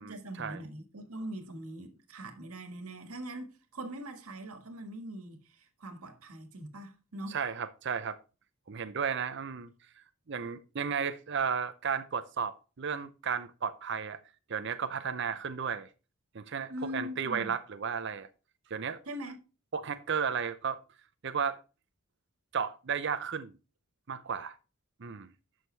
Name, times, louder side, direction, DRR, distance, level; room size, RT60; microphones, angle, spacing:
voice 1, 0.0-7.4 16.7-17.5 19.1-19.4, right 1 dB, 85° right, 1.7 m, -42 dB
voice 2, 7.3-8.2 8.7-9.7 10.3-14.2 14.5-15.9 16.3-18.3 18.7-19.0 19.7-20.8 21.2-21.6 22.5-23.5 24.1-24.6 25.0-25.3, right 6 dB, 55° right, 0.6 m, -33 dB
11.0 x 6.4 x 3.3 m
head